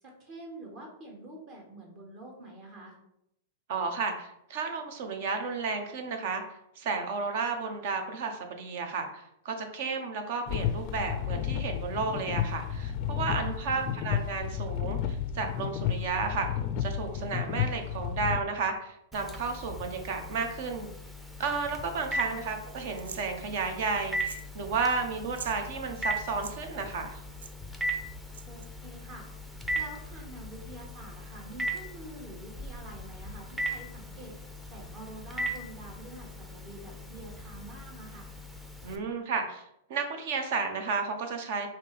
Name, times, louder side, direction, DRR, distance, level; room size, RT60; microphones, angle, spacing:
voice 1, 0.0-3.0 13.4-13.9 22.2-22.4 28.4-29.3 29.7-38.3, right 1 dB, 40° right, 0 dB, 1.4 m, -47 dB
voice 2, 3.7-6.4 6.8-16.5 16.8-20.9 21.4-27.2 38.8-39.6 39.9-41.7, right 4 dB, 60° right, 6 dB, 0.9 m, -32 dB
sound 1, 10.5-18.4, left 9 dB, 45° left, 0.4 m, -32 dB
Telephone, 19.1-39.0, right 1 dB, 5° right, 0.6 m, -38 dB
sound 2, 23.0-23.3 24.1-24.5 24.8-24.9 25.2-25.6 26.3-26.6 27.4-27.5 28.3-28.7, right 6 dB, 90° right, 0.4 m, -43 dB
5.1 x 2.9 x 3.4 m, 0.78 s
hypercardioid pair, 125°, 0 cm